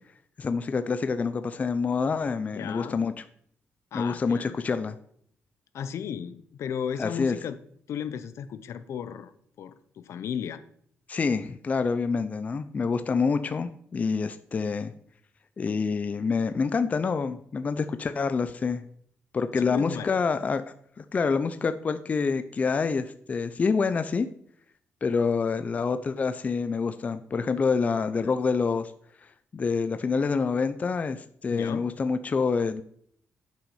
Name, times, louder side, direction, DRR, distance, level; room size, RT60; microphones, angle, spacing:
voice 1, 0.4-3.1 3.9-5.0 7.0-7.4 11.1-14.9 15.6-18.8 19.3-20.6 21.0-24.3 25.0-28.9 29.5-32.8, left 5 dB, 30° left, 10 dB, 0.4 m, -27 dB
voice 2, 2.5-3.0 3.9-4.6 5.7-7.6 7.9-9.3 9.6-10.6 19.6-20.2 31.5-31.9, left 8 dB, 70° left, 13 dB, 0.6 m, -35 dB
8.5 x 6.0 x 5.6 m, 0.64 s
cardioid pair, 145°, 5 cm